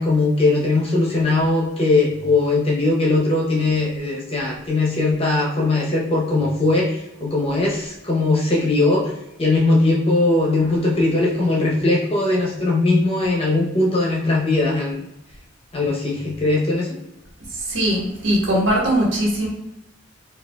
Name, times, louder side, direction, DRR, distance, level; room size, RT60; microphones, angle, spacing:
voice 1, 0.0-9.1 9.4-15.0 15.7-16.9, left 2 dB, 30° left, -2 dB, 0.8 m, -20 dB
voice 2, 17.5-19.5, right 1 dB, 70° right, -3 dB, 1.3 m, -20 dB
4.7 x 2.5 x 2.3 m, 0.85 s
head